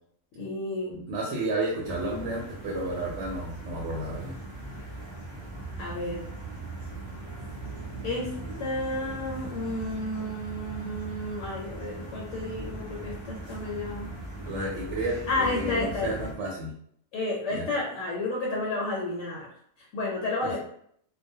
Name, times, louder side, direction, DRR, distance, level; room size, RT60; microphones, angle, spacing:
voice 1, 0.4-1.0 5.8-6.3 8.0-14.1 15.3-16.3 17.1-19.5 19.9-20.6, left 2 dB, 70° left, -4 dB, 0.9 m, -31 dB
voice 2, 0.9-4.3 14.5-16.7 17.5-17.7 20.4-20.6, right 2 dB, 70° right, -2 dB, 0.9 m, -32 dB
sound 1, 1.8-16.3, right 2 dB, 40° right, 0.4 m, -39 dB
2.3 x 2.1 x 2.6 m, 0.66 s
omnidirectional pair, 1.4 m